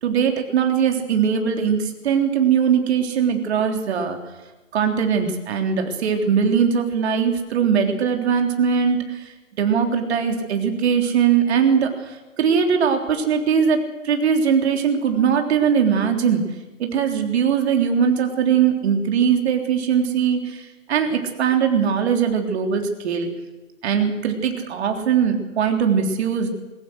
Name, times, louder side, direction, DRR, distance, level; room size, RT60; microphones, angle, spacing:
voice 1, 0.0-4.2 4.7-13.8 14.0-16.4 16.8-23.3 23.8-26.5, right 7 dB, 50° right, 4 dB, 3.6 m, -20 dB
21.5 x 21.0 x 6.5 m, 1.2 s
figure-of-eight pair, 130°, 40 cm